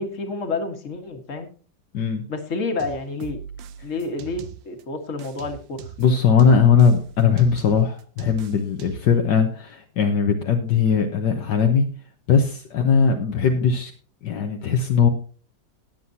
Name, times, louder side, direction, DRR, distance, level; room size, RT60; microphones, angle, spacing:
voice 1, 0.0-1.5 2.3-3.4 3.8-5.9, left 3 dB, 45° left, 5 dB, 1.9 m, -29 dB
sound 1, 2.8-4.8 5.2-9.2, right 9 dB, 80° right, 1.5 m, -40 dB
voice 2, 6.0-11.9 12.3-13.9 14.2-15.1, left 6 dB, 70° left, 4 dB, 1.6 m, -19 dB
19.0 x 7.8 x 2.7 m, 0.39 s
omnidirectional pair, 2.0 m